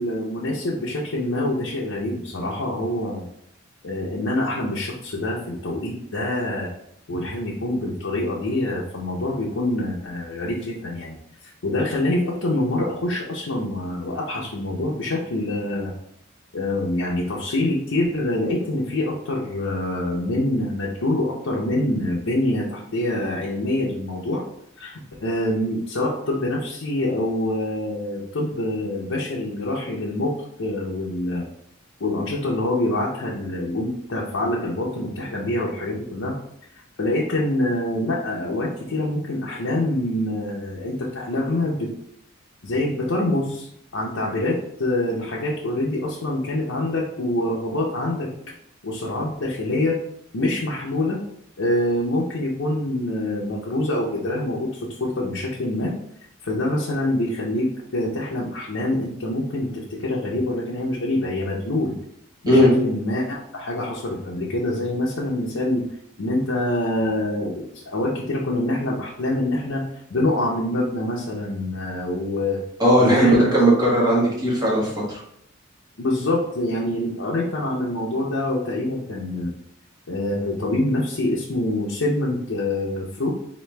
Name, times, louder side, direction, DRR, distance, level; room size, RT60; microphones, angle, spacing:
voice 1, 0.0-3.2 3.8-6.7 7.1-11.2 11.4-15.9 16.5-24.4 24.8-30.3 30.6-31.4 32.0-36.4 37.0-41.9 42.6-48.3 48.8-50.0 50.3-51.2 51.6-55.9 56.4-62.0 62.4-65.8 66.2-69.8 70.1-72.6 73.0-73.5 76.0-79.5 80.1-83.3, left 1 dB, 70° left, -4 dB, 0.6 m, -25 dB
voice 2, 72.8-74.9, equal, 20° right, -5 dB, 1.3 m, -17 dB
3.8 x 3.0 x 3.2 m, 0.74 s
head